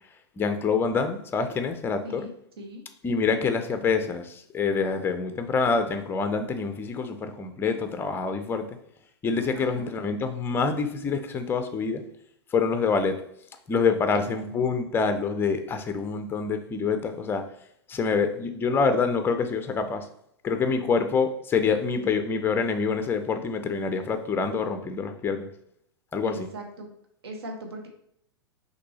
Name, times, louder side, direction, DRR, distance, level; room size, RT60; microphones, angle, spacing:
voice 1, 0.4-2.3 3.0-8.6 9.2-12.0 12.5-13.2 13.7-17.4 17.9-20.1 20.4-25.5 26.1-26.5, left 5 dB, 15° left, 8 dB, 0.5 m, -26 dB
voice 2, 2.0-2.8 9.5-9.9 14.1-14.6 26.2-26.9 27.2-27.9, right 1 dB, 65° right, 2 dB, 1.0 m, -40 dB
5.9 x 2.7 x 3.0 m, 0.71 s
figure-of-eight pair, 100°, 14 cm